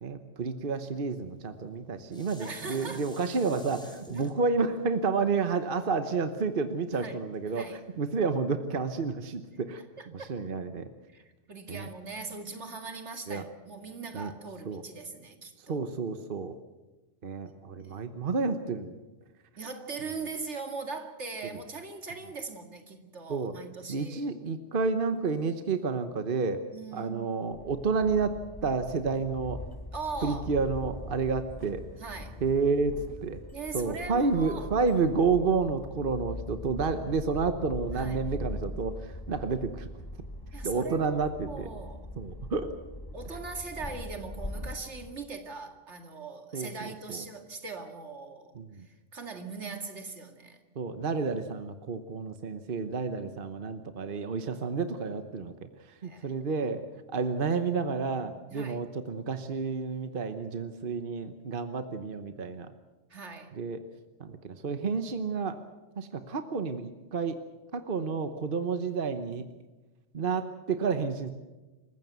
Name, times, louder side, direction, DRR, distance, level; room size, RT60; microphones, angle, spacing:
voice 1, 0.0-9.8 10.1-10.9 11.7-11.9 13.3-13.4 14.1-14.3 14.7-14.8 15.7-16.5 17.2-19.0 23.3-23.5 23.9-26.6 26.9-29.6 30.2-31.8 32.4-33.0 33.2-33.4 33.7-39.9 40.6-41.7 42.2-42.7 46.5-47.2 48.5-48.9 50.8-56.8 57.1-62.7 63.5-63.8 64.2-65.6 66.0-67.4 67.7-69.4 70.1-71.3, right 4 dB, 50° right, 9 dB, 1.2 m, -30 dB
Dishes pots and pans, 1.5-6.8 7.3-7.4, equal, 5° left, 3.3 m, -51 dB
voice 2, 2.4-3.0 4.1-4.3 6.9-7.8 9.5-10.3 11.1-15.8 17.8-18.1 19.6-24.3 26.7-27.3 29.9-30.5 32.0-32.3 33.5-34.7 37.9-38.3 40.5-41.2 41.5-42.1 43.1-50.6 56.0-56.3 58.5-58.8 63.1-63.5, right 4 dB, 75° right, 5 dB, 2.5 m, -40 dB
sound 1, 27.5-45.1, left 1 dB, 20° left, 1.0 m, -41 dB
27.0 x 15.5 x 8.1 m, 1.2 s
omnidirectional pair, 1.2 m